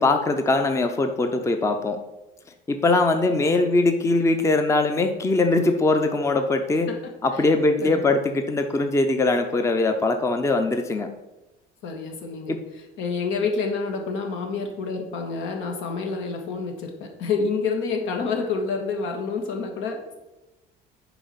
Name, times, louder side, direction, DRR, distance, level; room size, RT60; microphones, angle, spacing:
voice 1, 0.0-2.0 2.7-6.9 7.2-11.1 12.5-12.6, left 2 dB, 15° left, 6 dB, 0.6 m, -21 dB
voice 2, 11.8-20.1, left 4 dB, 75° left, 3 dB, 1.7 m, -28 dB
7.0 x 5.1 x 5.6 m, 1.0 s
cardioid pair, 125°, 20 cm